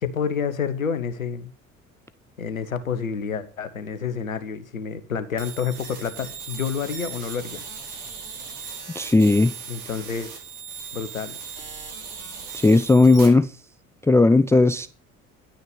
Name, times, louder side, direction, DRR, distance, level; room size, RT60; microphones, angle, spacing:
voice 1, 0.0-1.5 2.4-7.6 9.7-10.3 10.9-11.4, left 6 dB, 85° left, 1.2 m, -29 dB
sound 1, 5.4-13.3, right 6 dB, 55° right, 4.8 m, -38 dB
voice 2, 9.0-9.5 12.5-13.5 14.1-14.9, left 3 dB, 5° left, 0.5 m, -16 dB
11.5 x 9.3 x 5.0 m
figure-of-eight pair, 55°, 40 cm